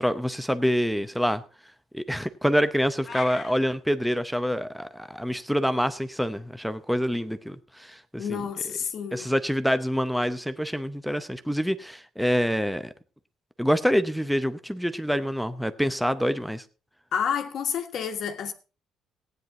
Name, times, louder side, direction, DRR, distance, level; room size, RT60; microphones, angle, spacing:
voice 1, 0.0-1.4 1.9-8.4 9.1-12.9 13.6-16.6, equal, ahead, 0.7 m, -26 dB
sound 1, 3.0-3.5, left 5 dB, 35° left, 1.4 m, -37 dB
voice 2, 8.2-9.3 17.1-18.5, left 7 dB, 55° left, 1.4 m, -29 dB
16.0 x 9.6 x 3.9 m
cardioid pair, 130°, 0 cm